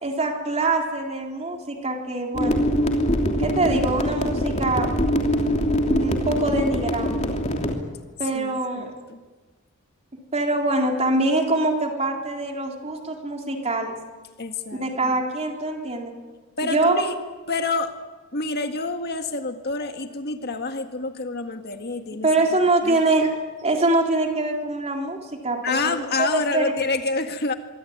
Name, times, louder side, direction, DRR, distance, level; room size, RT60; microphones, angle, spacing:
voice 1, 0.0-2.6 3.4-4.9 5.9-7.2 8.2-8.9 10.3-14.0 14.8-16.1 16.6-16.9 22.2-23.3 23.6-25.9 26.2-26.6, right 2 dB, 30° right, 2 dB, 3.7 m, -24 dB
sound 1, 2.3-7.7, equal, 30° left, 3.0 m, -23 dB
voice 2, 8.3-9.2 14.4-14.8 16.6-17.2 17.5-17.9 18.3-22.3 22.8-23.0 25.6-27.5, left 3 dB, 45° left, 6 dB, 1.8 m, -27 dB
25.0 x 24.0 x 9.4 m, 1.3 s
head